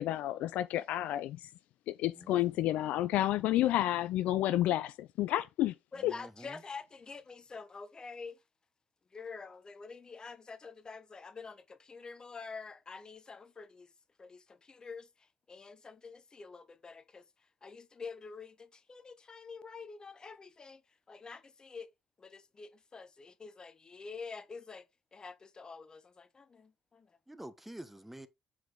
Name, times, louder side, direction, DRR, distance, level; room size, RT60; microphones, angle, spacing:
voice 1, 0.0-1.5 1.9-5.8 6.0-6.1, left 14 dB, 55° left, 0.4 m, -30 dB
voice 2, 2.2-2.6 6.0-6.6 27.3-28.3, right 1 dB, 5° right, 1.1 m, -48 dB
voice 3, 5.9-8.4 9.1-13.9 14.2-17.2 17.6-20.8 21.1-21.9 22.2-24.8 25.1-27.1, left 4 dB, 30° left, 0.9 m, -47 dB
7.8 x 4.9 x 3.8 m
figure-of-eight pair, 50°, 3 cm